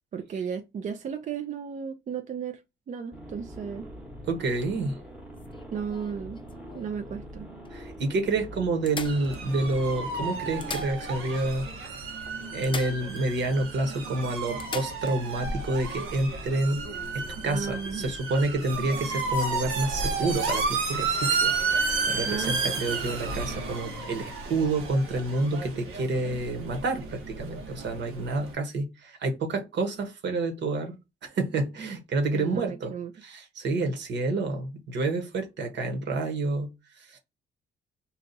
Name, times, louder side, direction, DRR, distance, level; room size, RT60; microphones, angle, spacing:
voice 1, 0.1-2.6 2.9-3.9 5.7-6.4 6.7-7.6 17.5-18.1 22.2-22.8 32.3-33.1, right 7 dB, 40° right, 0.4 m, -34 dB
sound 1, 3.1-10.9, equal, 5° right, 1.0 m, -43 dB
voice 2, 4.2-5.0 7.7-11.7 12.5-16.8 17.1-31.0 31.2-32.9 33.2-36.7 37.0-37.2, right 2 dB, 65° right, 1.2 m, -29 dB
sound 2, 5.3-7.0 7.6-7.7 8.0-8.1 8.9-9.9 10.4-11.5 11.7-11.8 12.6-13.5 13.8-13.9 14.6-15.2 17.1-17.3, left 5 dB, 25° left, 0.4 m, -40 dB
sound 3, 9.0-28.5, right 4 dB, 85° right, 1.1 m, -32 dB
2.8 x 2.4 x 3.8 m
cardioid pair, 90°, 20 cm